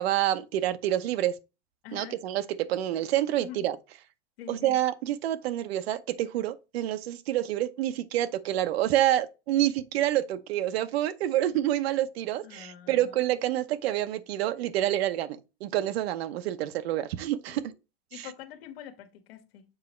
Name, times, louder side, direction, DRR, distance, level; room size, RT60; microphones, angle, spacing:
voice 1, 0.0-1.4 1.9-2.4 2.7-3.8 4.5-17.6 18.2-18.3, right 13 dB, 85° right, 0.8 m, -28 dB
voice 2, 1.8-2.2 3.4-3.7 4.4-4.8 12.4-13.3 17.5-17.7 18.1-19.6, left 10 dB, 75° left, 1.6 m, -45 dB
7.4 x 4.8 x 3.1 m
supercardioid pair, 180°, 30 cm